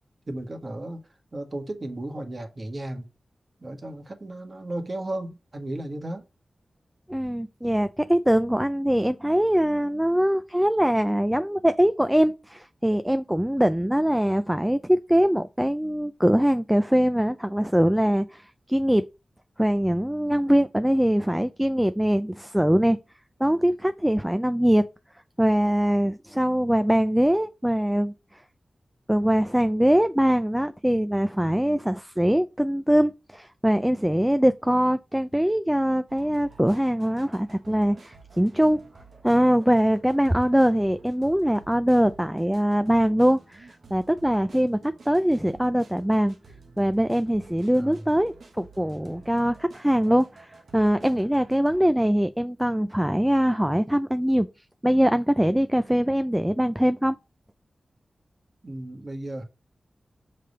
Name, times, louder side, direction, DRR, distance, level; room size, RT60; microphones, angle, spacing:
voice 1, 0.3-1.0 1.3-3.1 3.6-6.2 47.7-48.0 58.6-59.4, right 1 dB, 40° right, 1.5 m, -34 dB
voice 2, 7.1-19.0 19.6-23.0 23.4-24.9 25.4-28.1 29.1-38.8 39.2-46.4 46.8-54.5 54.8-57.2, equal, 5° right, 0.4 m, -22 dB
sound 1, 36.1-51.8, right 3 dB, 75° right, 1.1 m, -51 dB
5.8 x 3.3 x 5.4 m
cardioid pair, 60°, 0 cm